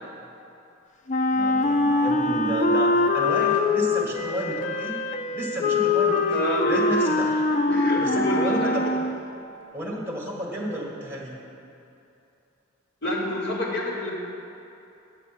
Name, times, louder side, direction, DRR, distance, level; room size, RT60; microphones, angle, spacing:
Wind instrument woodwind instrument, 1.1-9.2, left 3 dB, 35° left, 0.4 m, -23 dB
voice 1, 1.3-4.9 5.3-7.4 7.9-8.9 9.7-11.4, equal, 10° right, -3 dB, 1.7 m, -31 dB
voice 2, 6.3-6.8 7.7-8.7 13.0-14.1, left 1 dB, 55° left, -4 dB, 2.2 m, -27 dB
9.9 x 6.8 x 5.8 m, 2.8 s
head